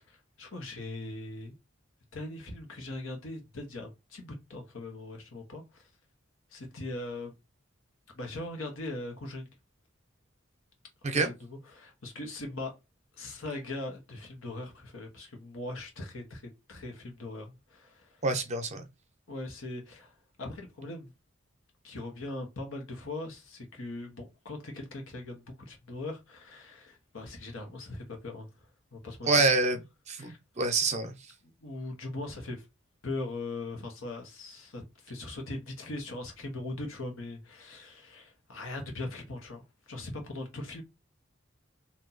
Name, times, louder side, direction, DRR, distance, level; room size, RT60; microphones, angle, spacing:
voice 1, 0.0-1.5 2.1-5.9 6.5-7.3 8.1-9.5 11.0-12.7 13.1-16.4 16.7-18.2 19.3-21.1 21.8-28.5 28.9-29.5 30.2-30.4 31.6-32.7 33.0-40.8, left 2 dB, 85° left, 1.3 m, -40 dB
voice 2, 18.2-18.8 29.2-29.8 30.1-31.2, right 3 dB, 35° right, 0.7 m, -26 dB
2.9 x 2.8 x 3.9 m
head